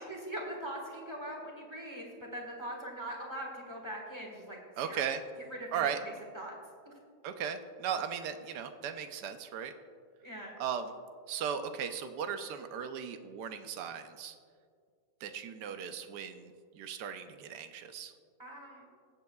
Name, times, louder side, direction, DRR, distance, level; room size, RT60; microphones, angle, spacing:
voice 1, 0.1-4.6 4.8-5.0 5.5-6.6 10.2-10.5 18.4-18.8, right 1 dB, 15° right, -1 dB, 1.5 m, -42 dB
voice 2, 4.8-5.2 5.7-6.0 7.2-9.7 10.6-10.9 11.3-14.4 15.2-18.1, right 8 dB, 80° right, 8 dB, 1.2 m, -37 dB
18.0 x 7.8 x 2.3 m, 2.1 s
omnidirectional pair, 1.8 m